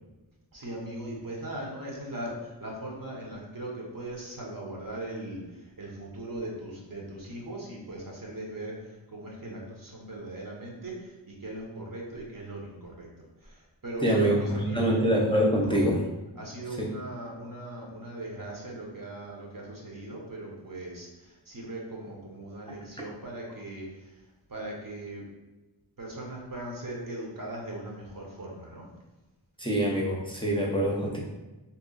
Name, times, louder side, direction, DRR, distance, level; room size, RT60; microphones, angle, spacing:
voice 1, 0.5-13.1 13.4-14.9 15.6-15.8 16.4-24.2 24.5-25.3 26.0-28.9, right 1 dB, 50° right, -2 dB, 0.9 m, -39 dB
voice 2, 14.0-16.0 22.7-22.8 29.6-31.2, equal, 10° left, -3 dB, 0.6 m, -25 dB
2.8 x 2.3 x 3.8 m, 1.1 s
wide cardioid pair, 50°, 44 cm